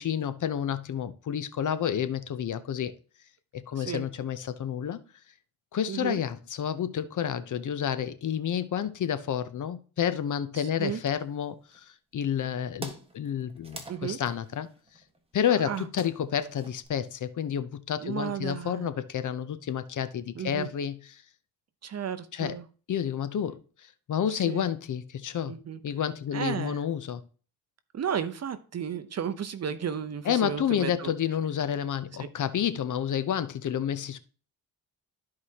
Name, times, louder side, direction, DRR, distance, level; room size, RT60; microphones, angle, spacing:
voice 1, 0.0-2.9 3.5-5.0 5.7-11.9 12.1-14.7 15.3-21.2 22.3-22.6 22.9-23.6 24.1-25.5 25.8-27.2 30.2-34.2, left 9 dB, 50° left, 0.7 m, -30 dB
voice 2, 5.9-6.2 10.6-11.0 13.9-14.2 15.5-15.9 18.0-18.9 20.3-20.7 21.8-22.6 24.3-24.7 25.5-25.8 26.3-26.8 27.9-31.1, right 8 dB, 40° right, 0.7 m, -34 dB
sound 1, 11.1-11.8 12.4-12.5 12.7-16.9, right 2 dB, 15° right, 1.4 m, -46 dB
13.0 x 4.8 x 2.9 m
cardioid pair, 100°, 40 cm